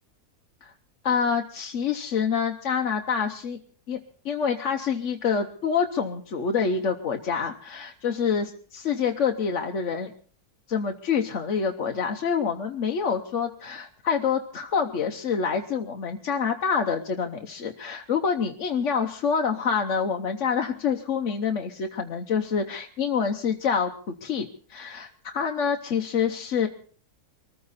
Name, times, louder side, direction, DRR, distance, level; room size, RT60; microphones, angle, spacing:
voice 1, 1.0-3.6 3.9-4.0 4.2-10.1 10.7-26.7, left 6 dB, 55° left, 3 dB, 1.2 m, -27 dB
23.5 x 14.5 x 4.1 m, 0.43 s
omnidirectional pair, 1.6 m